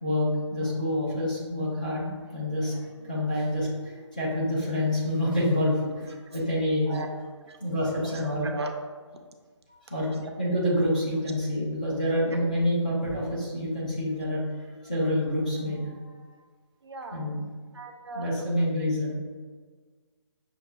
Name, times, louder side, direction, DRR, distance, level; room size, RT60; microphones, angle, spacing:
voice 1, 0.0-6.9 7.6-8.5 9.7-14.4 14.8-16.1 17.1-17.4 18.1-19.1, left 1 dB, 15° left, -6 dB, 0.4 m, -27 dB
voice 2, 8.0-8.8 16.8-17.2 17.7-18.7, right 2 dB, 55° right, 4 dB, 0.5 m, -38 dB
6.5 x 2.3 x 2.3 m, 1.5 s
hypercardioid pair, 175°, 16 cm